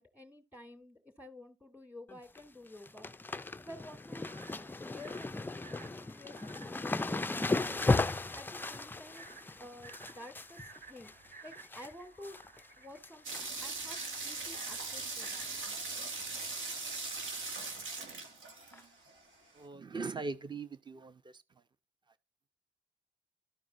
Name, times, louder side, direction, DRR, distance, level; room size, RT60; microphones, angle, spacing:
voice 1, 0.0-3.1 3.6-4.3 4.8-7.5 8.0-9.2 9.6-11.1 11.4-12.4 12.8-15.5, left 1 dB, 5° right, 2.9 m, -51 dB
sound 1, 2.1-2.4 2.7-11.9 12.2-12.7 13.0-13.8 14.1-14.2 15.2-15.5 15.7-15.8 16.2-16.3 17.9-18.0 18.7-18.8, left 3 dB, 10° left, 0.4 m, -36 dB
sound 2, 3.9-15.7, right 4 dB, 55° right, 4.1 m, -57 dB
sound 3, 13.2-19.1, right 3 dB, 85° right, 2.2 m, -40 dB
voice 2, 19.6-21.2, right 4 dB, 20° right, 0.9 m, -40 dB
13.5 x 4.7 x 2.5 m
cardioid pair, 90°, 20 cm